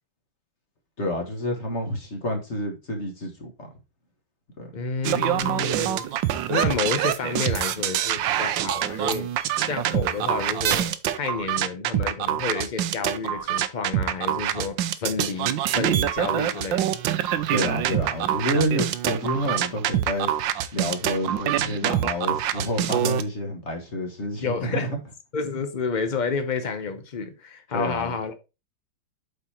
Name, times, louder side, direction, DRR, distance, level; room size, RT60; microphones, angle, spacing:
voice 1, 1.0-3.7 4.6-4.7 17.5-20.3 20.7-25.0 27.7-28.1, equal, 40° left, 1.8 m, -28 dB
voice 2, 4.7-6.1 6.5-9.3 9.7-16.9 24.4-24.9 25.3-28.3, left 5 dB, 70° left, 0.4 m, -30 dB
sound 1, 5.0-23.2, right 11 dB, 85° right, 1.4 m, -25 dB
7.8 x 4.6 x 4.3 m
omnidirectional pair, 2.0 m